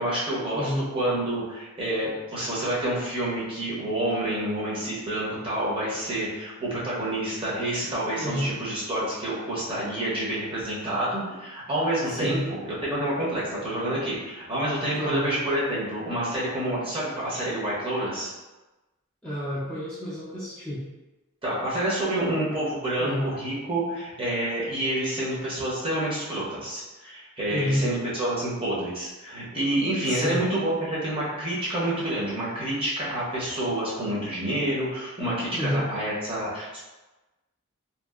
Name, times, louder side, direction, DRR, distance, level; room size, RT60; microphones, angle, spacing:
voice 1, 0.0-18.3 21.4-36.8, right 1 dB, 25° right, -8 dB, 0.7 m, -28 dB
voice 2, 0.5-0.9 8.2-8.5 12.0-12.4 15.0-15.2 19.2-20.8 23.0-23.3 27.5-27.9 30.0-30.4 35.5-35.9, equal, 5° left, -11 dB, 0.4 m, -29 dB
2.7 x 2.5 x 2.3 m, 1.1 s
head